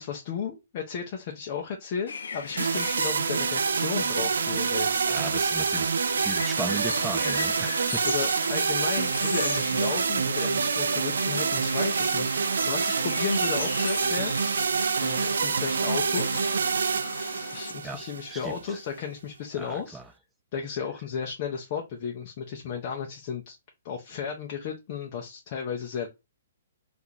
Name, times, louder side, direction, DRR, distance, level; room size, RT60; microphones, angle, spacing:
voice 1, 0.0-4.9 8.0-14.4 15.0-16.5 17.5-20.0 20.5-23.6 23.8-26.1, left 6 dB, 35° left, 0.6 m, -34 dB
sound 1, 2.1-17.7, left 5 dB, 80° left, 0.5 m, -39 dB
sound 2, 2.6-18.6, right 5 dB, 90° right, 0.4 m, -26 dB
voice 2, 5.1-8.1 17.8-18.8 19.6-20.0, right 3 dB, 5° right, 0.4 m, -37 dB
3.6 x 2.5 x 2.8 m
hypercardioid pair, 160°, 0 cm